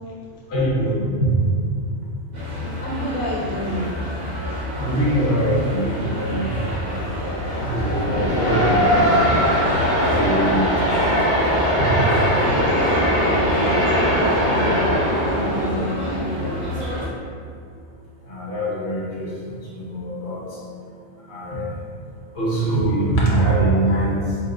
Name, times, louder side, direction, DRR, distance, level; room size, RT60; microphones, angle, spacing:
voice 1, 0.5-1.3 4.7-6.6 6.8-7.2 7.6-9.3 9.9-11.0 11.8-11.9 18.2-20.6 21.2-21.7 22.3-24.4, right 1 dB, 50° left, -6 dB, 1.4 m, -23 dB
sound 1, 2.3-17.1, left 1 dB, 85° right, 1.9 m, -29 dB
voice 2, 2.8-4.0 4.5-4.6 12.3-14.9 15.1-16.7, equal, 85° left, -4 dB, 1.1 m, -30 dB
sound 2, 5.3-15.7, equal, 25° left, 1.0 m, -21 dB
4.5 x 4.4 x 2.5 m, 2.3 s
omnidirectional pair, 1.4 m